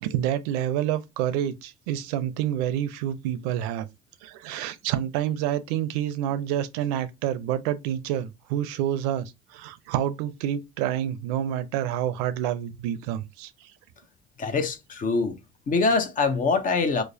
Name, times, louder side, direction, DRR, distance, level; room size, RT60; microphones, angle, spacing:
voice 1, 0.0-3.9 4.2-13.5, right 11 dB, 80° right, 0.5 m, -28 dB
voice 2, 14.4-15.4 15.7-17.0, left 4 dB, 45° left, 0.7 m, -24 dB
4.9 x 2.0 x 2.6 m
hypercardioid pair, 70°, 19 cm